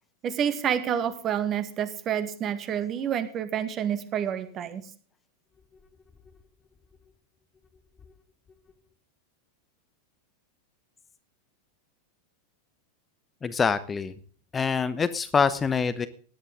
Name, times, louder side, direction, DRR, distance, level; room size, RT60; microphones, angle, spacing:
voice 1, 0.2-4.8, right 9 dB, 30° right, 11 dB, 2.0 m, -28 dB
voice 2, 13.4-14.1 14.5-16.1, left 5 dB, 20° left, 13 dB, 0.9 m, -25 dB
18.0 x 11.5 x 3.6 m, 0.44 s
figure-of-eight pair, 90°, 0 cm